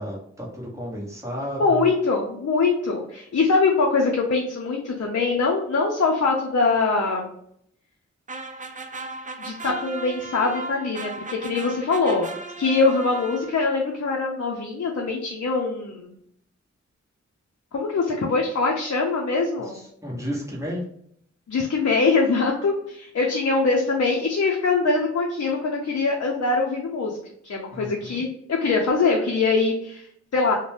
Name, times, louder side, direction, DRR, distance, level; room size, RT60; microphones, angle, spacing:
voice 1, 0.0-1.9 19.7-20.8 27.7-28.2, equal, 10° right, -4 dB, 1.1 m, -32 dB
voice 2, 1.6-7.3 9.4-12.3 12.6-16.1 17.7-19.8 21.5-27.2 27.4-30.5, left 4 dB, 60° left, -1 dB, 0.6 m, -23 dB
sound 1, 8.3-13.8, right 3 dB, 25° right, 0.4 m, -36 dB
2.5 x 2.2 x 3.3 m, 0.68 s
wide cardioid pair, 65°, 29 cm